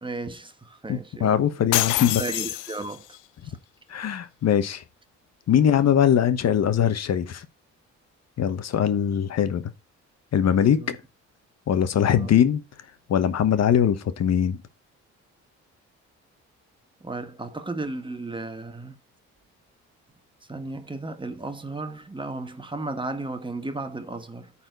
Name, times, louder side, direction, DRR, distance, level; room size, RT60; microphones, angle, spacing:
voice 1, 0.0-1.5 2.2-3.1 3.4-3.5 5.6-5.7 10.6-11.0 12.0-12.4 17.0-19.0 20.4-24.5, right 2 dB, 15° right, 1.3 m, -34 dB
voice 2, 0.9-2.2 3.9-4.8 5.5-7.5 8.4-9.6 10.3-10.8 11.7-12.6 13.1-14.6, left 9 dB, 60° left, 1.1 m, -21 dB
sound 1, 1.7-3.2, left 17 dB, 85° left, 0.5 m, -26 dB
8.8 x 4.3 x 5.2 m
cardioid pair, 90°, 30 cm